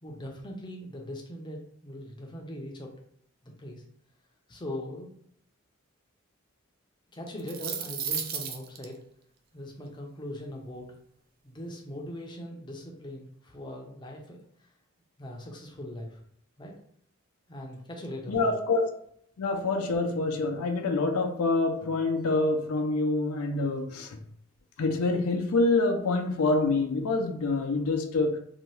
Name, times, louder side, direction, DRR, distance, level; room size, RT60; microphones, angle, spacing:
voice 1, 0.0-2.9 3.4-3.8 4.5-5.2 7.1-9.0 9.5-10.9 11.4-14.7 15.2-16.2 16.6-16.7 17.5-18.6, left 1 dB, 20° left, 0 dB, 0.5 m, -40 dB
sound 1, 7.3-8.8, right 7 dB, 40° right, 0.3 m, -33 dB
voice 2, 18.3-18.8 19.4-24.2 24.8-28.4, left 3 dB, 85° left, 5 dB, 0.5 m, -26 dB
2.7 x 2.2 x 3.1 m, 0.68 s
head